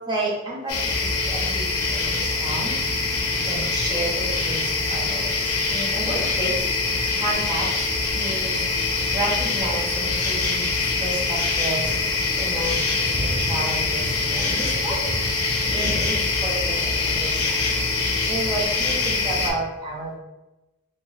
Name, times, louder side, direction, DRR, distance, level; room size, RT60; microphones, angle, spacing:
voice 1, 0.1-0.7 1.2-1.6 2.4-2.8 3.4-4.1 4.4-4.6 4.9-5.3 5.7-6.5 7.2-7.7 8.2-8.5 9.1-10.6 11.0-11.1 11.6-11.9 12.4-12.8 13.1-15.1 15.7-16.1 16.4-16.7 17.0-17.5 18.3-20.1, right 1 dB, 20° right, -4 dB, 0.6 m, -29 dB
sound 1, 0.7-19.5, left 3 dB, 75° left, 0.6 m, -24 dB
2.4 x 2.4 x 3.0 m, 1.0 s
head